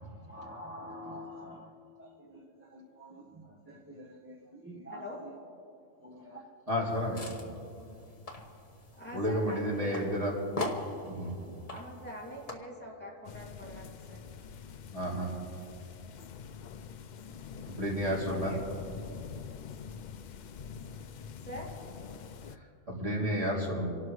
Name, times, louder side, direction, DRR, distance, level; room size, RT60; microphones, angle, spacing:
voice 1, 0.3-5.3 6.0-6.4, equal, 10° right, -3 dB, 0.9 m, -47 dB
voice 2, 4.9-5.2 9.0-10.1 11.7-14.2 18.0-18.8 21.4-21.8, equal, 10° left, -5 dB, 2.3 m, -44 dB
voice 3, 6.7-7.3 9.1-10.4 11.0-11.3 14.9-15.3 17.6-18.6 22.5-23.8, equal, 30° right, -5 dB, 2.9 m, -31 dB
sound 1, 6.9-12.5, left 2 dB, 30° left, 1.2 m, -42 dB
sound 2, 13.2-22.6, left 6 dB, 65° left, 0.4 m, -45 dB
28.0 x 12.0 x 3.1 m, 2.6 s
omnidirectional pair, 1.3 m